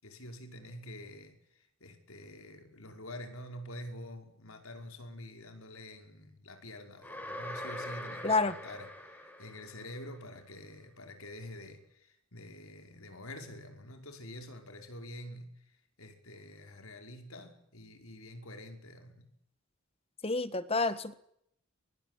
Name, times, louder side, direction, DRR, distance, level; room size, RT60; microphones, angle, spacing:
voice 1, 0.0-19.4, left 1 dB, 80° left, 5.4 m, -47 dB
sound 1, 7.0-10.1, left 1 dB, 10° left, 4.9 m, -43 dB
voice 2, 8.2-8.6 20.2-21.1, left 3 dB, 25° left, 1.6 m, -29 dB
24.0 x 22.5 x 9.5 m
head